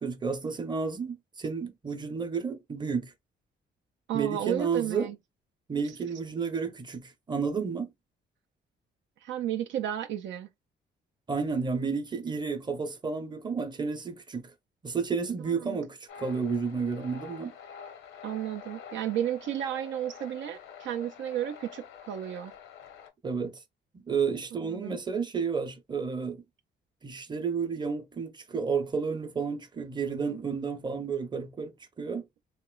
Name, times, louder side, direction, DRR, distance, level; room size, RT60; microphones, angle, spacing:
voice 1, 0.0-3.1 4.1-5.1 5.7-7.9 11.3-14.5 14.8-17.5 23.2-23.6 23.9-26.4 27.0-32.2, right 5 dB, 20° right, 0.7 m, -31 dB
voice 2, 4.1-5.2 9.2-10.5 15.5-15.8 18.2-22.5 24.6-25.0, right 11 dB, 70° right, 0.4 m, -33 dB
sound 1, 16.1-23.1, left 7 dB, 85° left, 0.7 m, -47 dB
2.9 x 2.9 x 2.2 m
cardioid pair, 90°, 20 cm